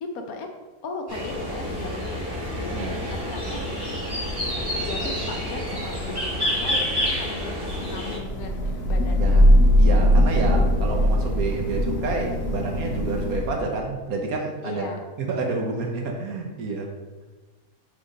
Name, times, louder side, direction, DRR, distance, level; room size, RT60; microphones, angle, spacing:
voice 1, 0.0-0.5 0.8-3.6 4.7-9.4 14.6-15.0, left 3 dB, 70° left, 4 dB, 1.1 m, -37 dB
sound 1, 1.1-8.2, equal, 15° right, 1.9 m, -28 dB
Thunder / Rain, 8.0-13.8, equal, 90° left, 1.6 m, -20 dB
voice 2, 9.2-9.5 9.8-16.9, right 3 dB, 65° right, 1 dB, 1.3 m, -29 dB
5.5 x 4.7 x 3.8 m, 1.3 s
omnidirectional pair, 1.7 m